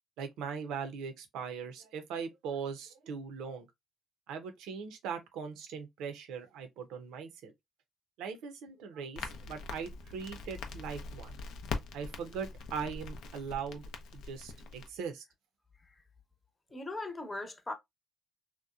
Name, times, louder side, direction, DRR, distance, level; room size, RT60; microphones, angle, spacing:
voice 1, 0.2-3.7 4.3-7.5 8.2-11.4 11.9-13.8 14.1-15.2, right 6 dB, 80° right, 0.6 m, -40 dB
Crackle, 9.2-14.9, left 4 dB, 75° left, 0.5 m, -42 dB
voice 2, 16.7-17.7, left 2 dB, 25° left, 0.8 m, -39 dB
2.8 x 2.1 x 2.4 m
supercardioid pair, 65°, 0 cm